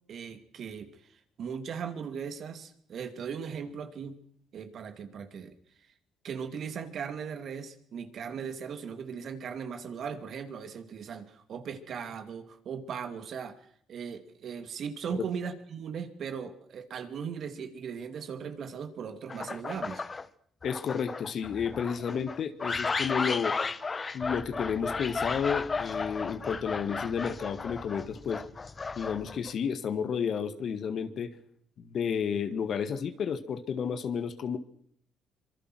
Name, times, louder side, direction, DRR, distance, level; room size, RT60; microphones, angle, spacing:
voice 1, 0.1-0.9 1.4-4.2 4.5-5.5 6.2-13.6 13.9-20.0 22.0-22.1, right 6 dB, 60° right, 9 dB, 2.6 m, -38 dB
sound 1, 19.3-20.3 20.6-29.5, left 4 dB, 35° left, 1.3 m, -34 dB
voice 2, 20.6-23.6 24.1-28.4 29.0-31.4 31.8-34.6, left 7 dB, 60° left, 11 dB, 2.0 m, -31 dB
25.5 x 23.5 x 6.3 m, 0.66 s
hypercardioid pair, 55°, 0 cm